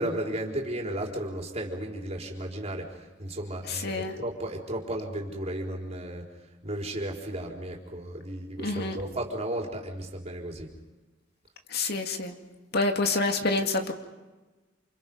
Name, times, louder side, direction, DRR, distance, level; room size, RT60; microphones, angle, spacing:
voice 1, 0.0-10.7, right 1 dB, 35° right, 0 dB, 4.3 m, -34 dB
voice 2, 3.8-4.1 8.6-9.0 11.7-12.3 12.7-13.9, left 3 dB, 60° left, 4 dB, 2.4 m, -27 dB
29.0 x 29.0 x 5.5 m, 1.2 s
head